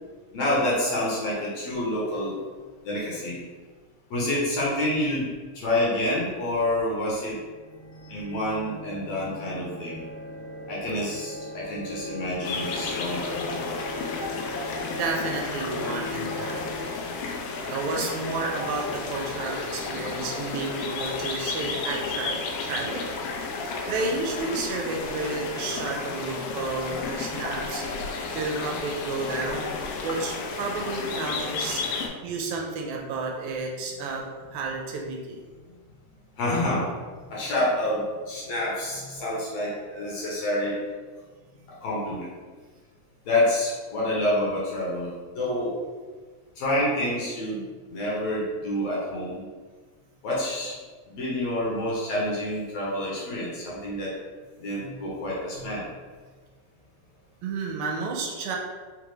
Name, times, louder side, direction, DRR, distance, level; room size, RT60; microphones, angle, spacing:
voice 1, 0.3-2.4 2.8-3.4 4.1-7.4 8.1-10.0 10.7-13.7 36.4-36.9 37.3-40.8 41.8-42.3 43.3-45.8 46.6-47.6 47.9-49.5 50.2-50.7 51.1-54.1 54.6-55.8, left 1 dB, 70° left, -6 dB, 1.9 m, -28 dB
sound 1, 7.3-16.8, left 2 dB, 55° right, 1.7 m, -39 dB
sound 2, 12.4-32.1, left 4 dB, 85° left, 2.0 m, -32 dB
voice 2, 14.9-16.7 17.7-23.0 23.9-27.8 28.3-29.7 30.0-31.9 32.2-34.3 34.5-35.4 57.4-58.6, right 3 dB, 80° right, 0 dB, 1.8 m, -31 dB
5.1 x 2.4 x 3.1 m, 1.4 s
omnidirectional pair, 3.5 m